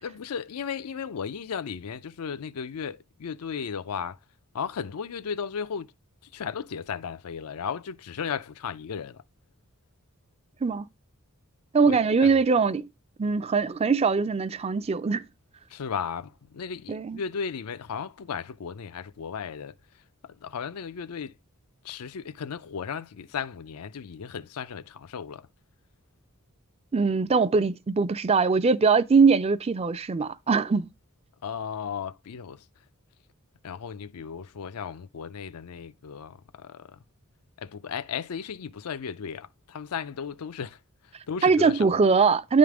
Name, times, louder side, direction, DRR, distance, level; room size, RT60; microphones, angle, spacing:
voice 1, 0.0-4.2 4.5-5.9 6.3-9.2 11.8-12.3 15.7-19.7 20.2-21.4 21.8-25.5 31.4-32.6 33.6-37.0 37.6-40.8 41.0-42.0, left 6 dB, 85° left, 0.5 m, -35 dB
voice 2, 11.7-12.8 13.2-15.2 16.9-17.2 26.9-30.9 41.4-42.6, right 5 dB, 25° right, 0.3 m, -22 dB
10.0 x 3.7 x 4.7 m
head